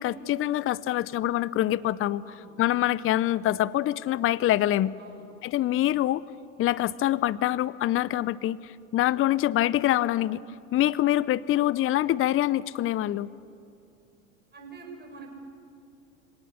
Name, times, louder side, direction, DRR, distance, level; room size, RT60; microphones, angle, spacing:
voice 1, 0.0-5.0 5.4-6.2 6.6-10.4 10.7-13.3, left 14 dB, 30° left, 20 dB, 0.6 m, -25 dB
voice 2, 14.5-15.3, right 4 dB, 25° right, 1 dB, 6.9 m, -45 dB
25.0 x 18.0 x 8.5 m, 2.6 s
hypercardioid pair, 80°, 41 cm